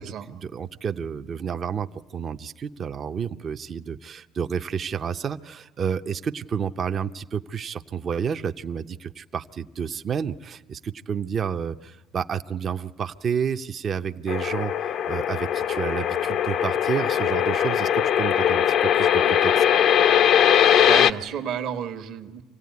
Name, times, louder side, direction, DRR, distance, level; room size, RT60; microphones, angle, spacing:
voice 1, 0.0-19.6, right 7 dB, 40° right, 9 dB, 0.7 m, -30 dB
sound 1, 14.3-21.1, left 9 dB, 60° left, 0.6 m, -20 dB
voice 2, 20.9-22.4, right 8 dB, 65° right, 6 dB, 1.4 m, -31 dB
26.0 x 16.5 x 9.5 m, 1.4 s
supercardioid pair, 90°, 0 cm